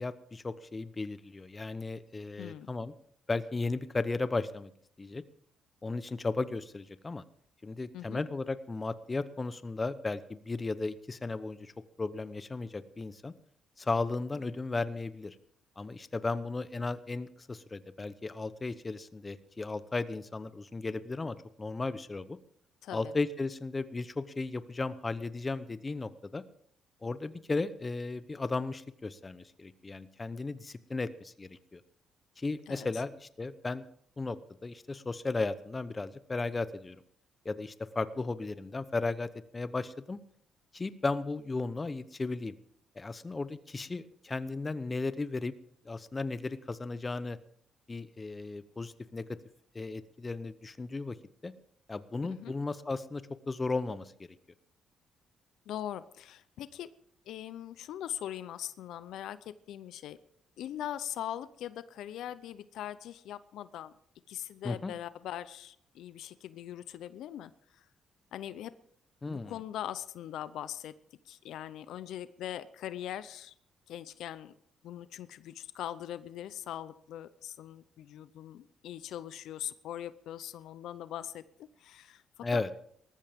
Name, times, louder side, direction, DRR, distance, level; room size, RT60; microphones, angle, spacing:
voice 1, 0.0-2.9 3.3-4.7 5.0-5.2 5.8-7.2 7.6-11.7 12.0-13.3 13.8-15.4 15.8-22.4 22.9-26.4 27.0-31.8 32.4-33.8 34.2-37.0 37.4-40.2 40.7-42.5 43.0-45.5 45.8-47.4 47.9-49.4 49.7-51.2 51.4-51.5 51.9-54.4 64.6-64.9 69.2-69.6 82.4-82.7, left 3 dB, 25° left, 14 dB, 0.8 m, -35 dB
voice 2, 2.4-2.7 7.9-8.2 22.8-23.1 32.7-32.9 52.3-52.5 55.7-56.9 57.3-60.2 60.6-63.9 64.3-67.8 68.3-68.7 69.3-70.9 71.3-73.5 73.9-74.5 74.8-82.6, left 11 dB, 80° left, 15 dB, 0.6 m, -41 dB
19.0 x 14.0 x 3.6 m, 0.67 s
cardioid pair, 90°, 0 cm